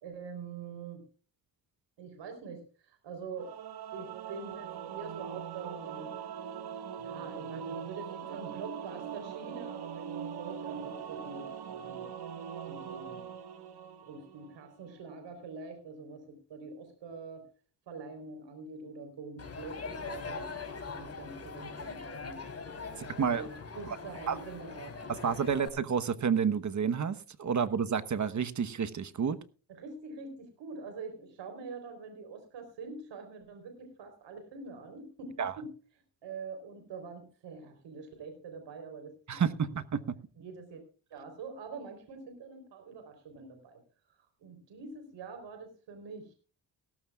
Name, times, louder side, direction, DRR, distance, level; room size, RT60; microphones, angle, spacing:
voice 1, 0.0-1.0 2.0-3.6 3.9-6.1 7.0-12.0 12.7-13.3 14.0-17.4 17.9-20.5 20.9-22.4 22.9-23.0 23.3-25.0 29.7-35.7 36.2-39.7 40.4-40.8 41.1-43.8 44.4-46.3, right 4 dB, 80° right, 6 dB, 4.0 m, -45 dB
Singing / Musical instrument, 3.4-14.6, right 8 dB, 60° right, 1.8 m, -41 dB
Crowd, 19.4-25.7, left 4 dB, 35° left, 3.7 m, -42 dB
voice 2, 23.0-23.5 23.9-24.0 24.3-24.4 25.1-29.4 35.4-35.5 39.3-40.0, right 7 dB, 40° right, 11 dB, 1.1 m, -30 dB
17.5 x 15.0 x 2.4 m, 0.37 s
cardioid pair, 85°, 43 cm